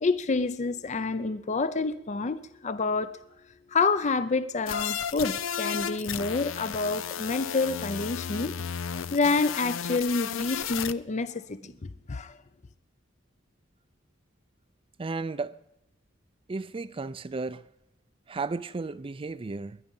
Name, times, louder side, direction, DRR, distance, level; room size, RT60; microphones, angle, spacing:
voice 1, 0.0-3.2 3.7-8.5 9.1-12.4, left 3 dB, 35° left, 0.5 m, -28 dB
sound 1, 4.7-10.9, left 8 dB, 85° left, 0.6 m, -33 dB
voice 2, 15.0-15.6 16.5-17.7 18.3-19.8, right 3 dB, 25° right, 0.4 m, -34 dB
22.0 x 9.9 x 5.5 m
head